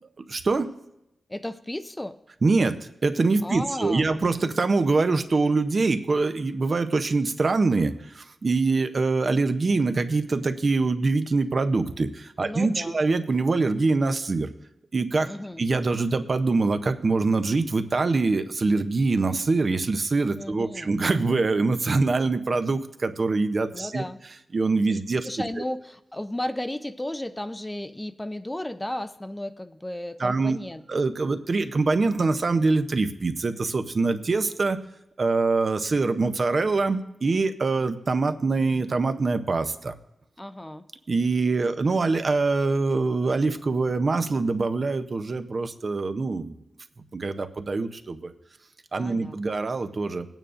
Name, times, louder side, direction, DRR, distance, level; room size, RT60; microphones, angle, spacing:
voice 1, 0.2-0.7 2.4-2.8 3.0-14.5 14.9-15.3 15.6-24.0 24.5-25.3 30.2-30.6 30.9-34.8 35.2-39.9 41.1-46.5 47.1-48.3 48.9-50.3, right 3 dB, 45° right, 9 dB, 0.6 m, -24 dB
voice 2, 1.3-2.2 3.4-4.1 12.4-13.0 15.2-15.6 20.4-20.9 23.7-24.2 24.9-30.8 40.4-40.8 49.0-49.4, left 1 dB, 10° left, 10 dB, 0.4 m, -34 dB
19.5 x 9.0 x 2.5 m, 0.84 s
wide cardioid pair, 125°, 0 cm